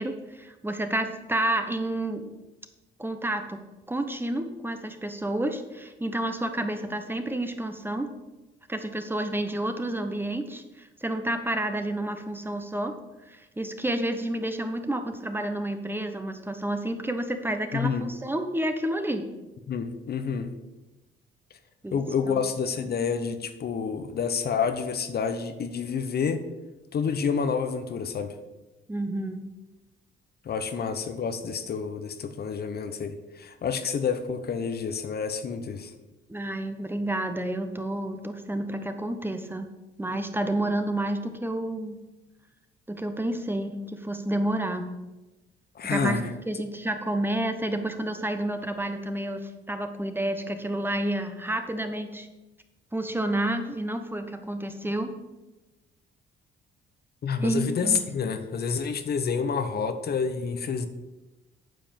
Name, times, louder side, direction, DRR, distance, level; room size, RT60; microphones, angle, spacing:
voice 1, 0.0-2.2 3.0-3.6 3.9-8.1 8.7-12.9 13.3-19.2 21.8-22.0 22.3-22.4 28.9-29.4 36.3-39.7 40.0-42.0 42.9-45.0 45.8-46.2 46.5-52.3 52.9-55.1 57.4-58.0, right 1 dB, 10° right, 7 dB, 1.0 m, -30 dB
voice 2, 17.7-18.0 19.7-20.5 21.9-26.4 26.9-28.3 30.4-35.9 45.7-46.3 57.2-60.9, left 6 dB, 50° left, 9 dB, 1.0 m, -28 dB
9.1 x 5.2 x 7.5 m, 1.1 s
cardioid pair, 90°, 20 cm